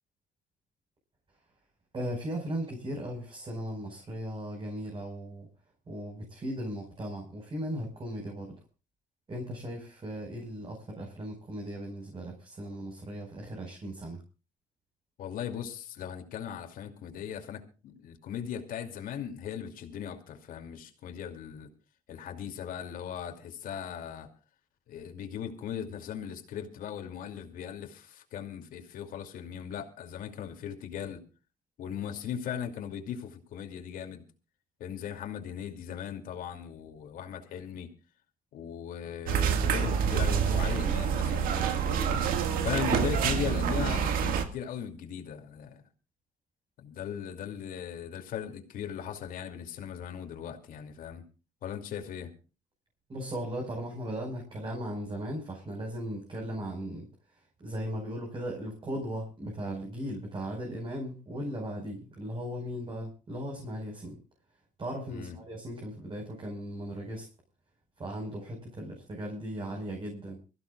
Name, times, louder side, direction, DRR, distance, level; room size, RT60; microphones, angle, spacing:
voice 1, 1.9-5.5 5.9-8.6 9.3-14.2 53.1-64.2 64.8-67.3 68.0-70.4, equal, 35° right, 5.0 m, -37 dB
voice 2, 15.2-21.7 22.1-24.3 24.9-31.2 31.8-34.2 34.8-37.9 38.5-42.2 42.6-45.8 46.8-51.2 51.6-52.3 65.1-65.4, left 8 dB, 80° left, 2.6 m, -38 dB
sound 1, 39.3-44.5, right 7 dB, 90° right, 1.8 m, -27 dB
24.5 x 15.5 x 2.4 m
cardioid pair, 90°, 14 cm